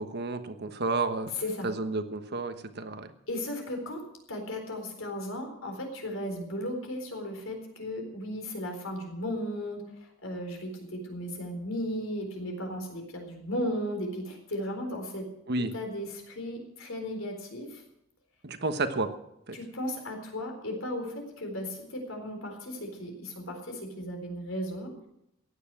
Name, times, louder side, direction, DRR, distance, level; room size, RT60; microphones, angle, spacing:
voice 1, 0.0-1.3 1.6-3.1 15.5-15.7 18.4-19.1 19.5-19.6, right 3 dB, 55° right, 8 dB, 1.2 m, -31 dB
voice 2, 1.4-1.7 3.3-4.0 4.3-15.3 15.7-17.8 19.5-24.9, left 1 dB, 75° left, 3 dB, 4.1 m, -35 dB
15.5 x 9.8 x 7.6 m, 0.81 s
head